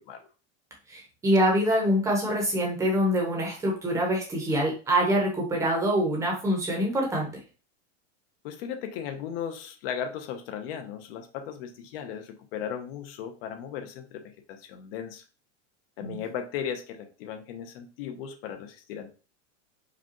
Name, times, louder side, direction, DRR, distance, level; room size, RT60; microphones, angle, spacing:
voice 1, 0.9-7.3 16.0-16.2, equal, 10° right, -1 dB, 0.8 m, -25 dB
voice 2, 8.4-14.2 14.5-15.2 16.0-19.1, left 8 dB, 50° left, 6 dB, 0.7 m, -36 dB
4.9 x 2.3 x 2.9 m, 0.35 s
supercardioid pair, 165°, 37 cm